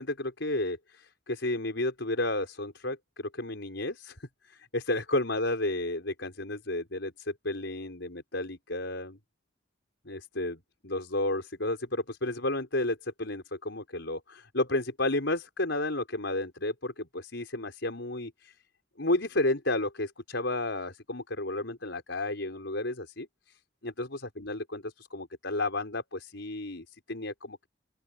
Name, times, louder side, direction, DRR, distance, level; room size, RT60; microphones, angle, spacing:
voice 1, 0.0-9.2 10.0-18.5 19.0-23.6 23.8-24.1 24.4-27.7, left 2 dB, 80° left, 4.8 m, -32 dB
open air
head